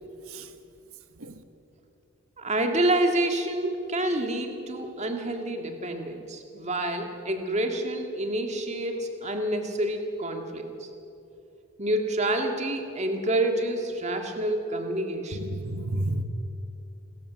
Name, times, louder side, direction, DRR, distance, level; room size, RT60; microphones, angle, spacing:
voice 1, 2.4-10.9 11.8-15.4, right 1 dB, 30° right, 4 dB, 1.9 m, -28 dB
voice 2, 15.3-16.2, right 1 dB, 75° right, 9 dB, 1.3 m, -31 dB
28.5 x 13.5 x 7.3 m, 2.8 s
head